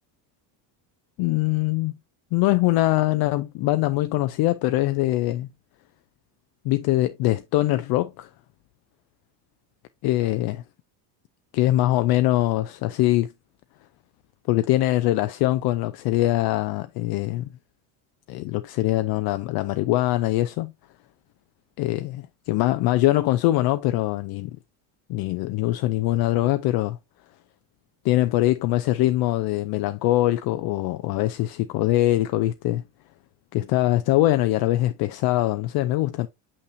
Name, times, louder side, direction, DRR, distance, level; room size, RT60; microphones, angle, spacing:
voice 1, 1.2-1.9 2.3-5.5 6.6-8.3 10.0-10.6 11.5-13.3 14.5-17.5 18.3-20.7 21.8-24.6 25.1-27.0 28.0-32.8 33.5-36.3, left 16 dB, 55° left, 0.5 m, -23 dB
6.6 x 5.7 x 2.7 m
cardioid pair, 140°, 45 cm